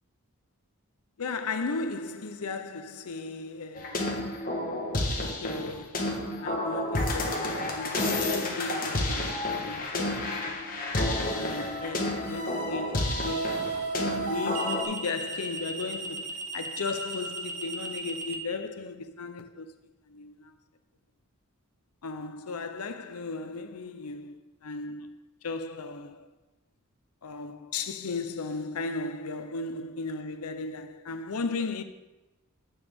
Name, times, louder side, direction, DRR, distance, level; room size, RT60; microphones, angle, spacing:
voice 1, 1.2-4.4 5.2-20.5 22.0-25.1 25.4-26.3 27.2-31.8, left 3 dB, 90° left, 0.7 m, -36 dB
sound 1, 3.8-14.8, left 1 dB, 40° left, 1.3 m, -30 dB
sound 2, 10.0-10.3 13.3-18.4, right 4 dB, 80° right, 1.1 m, -35 dB
9.7 x 7.1 x 3.6 m
head